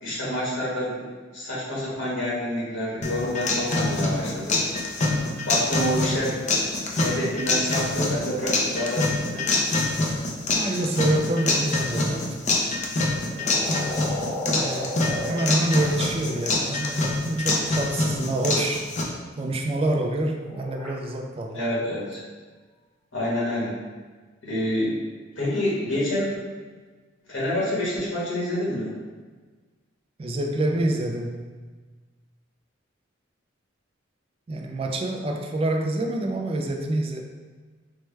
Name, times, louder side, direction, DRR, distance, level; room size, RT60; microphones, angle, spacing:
voice 1, 0.0-1.0 1.3-4.6 5.5-6.4 7.0-9.5 21.5-22.2 23.1-23.7 24.4-25.0 25.4-26.3 27.3-28.9, left 1 dB, 75° left, -7 dB, 1.5 m, -27 dB
sound 1, 3.0-19.0, left 2 dB, 40° left, 0.5 m, -25 dB
voice 2, 10.5-12.4 14.4-14.9 15.2-18.9 19.4-21.6 30.2-31.4 34.5-37.2, right 1 dB, 30° right, 2 dB, 0.3 m, -27 dB
sound 2, 11.2-11.4 13.2-17.6 19.7-20.9 21.9-22.2, left 1 dB, 5° left, 0.9 m, -34 dB
4.5 x 2.1 x 3.2 m, 1.4 s
head